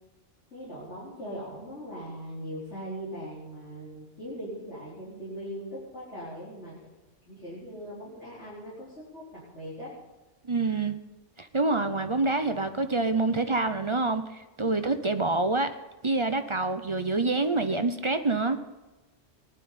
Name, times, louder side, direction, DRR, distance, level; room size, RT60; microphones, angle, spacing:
voice 1, 0.5-6.8 7.2-9.9, equal, 70° left, -10 dB, 4.7 m, -40 dB
voice 2, 10.4-11.0 11.4-14.2 14.6-15.7 16.0-18.6, right 3 dB, 30° right, 8 dB, 0.6 m, -26 dB
19.0 x 11.5 x 4.2 m, 1.1 s
omnidirectional pair, 1.2 m